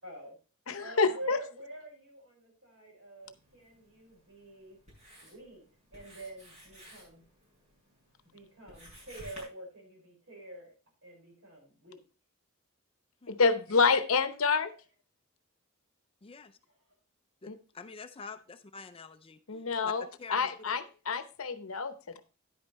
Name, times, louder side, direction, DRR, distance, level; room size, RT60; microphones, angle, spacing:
voice 1, 0.0-0.4 0.8-4.8 5.2-5.6 5.9-7.2 8.2-10.7 11.0-12.0, right 1 dB, 65° right, 0 dB, 5.2 m, -46 dB
voice 2, 0.7-1.4 13.3-14.7 17.5-17.6 19.5-22.2, left 5 dB, 75° left, 12 dB, 0.8 m, -28 dB
Writing, 3.2-9.4, equal, 30° right, 5.7 m, -55 dB
voice 3, 17.4-19.4 19.8-19.9 20.2-20.8, left 5 dB, 25° left, 10 dB, 0.5 m, -46 dB
10.5 x 8.8 x 3.1 m, 0.33 s
head